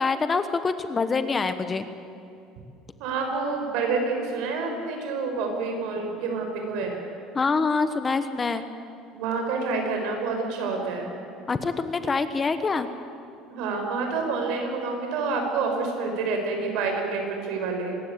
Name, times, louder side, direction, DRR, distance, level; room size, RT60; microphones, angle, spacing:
voice 1, 0.0-1.9 7.3-8.6 11.5-12.9, left 4 dB, 20° left, 10 dB, 1.1 m, -25 dB
voice 2, 3.0-7.0 9.1-11.2 13.5-18.0, right 4 dB, 65° right, 3 dB, 6.1 m, -28 dB
25.0 x 20.5 x 8.7 m, 2.6 s
cardioid pair, 155°, 0 cm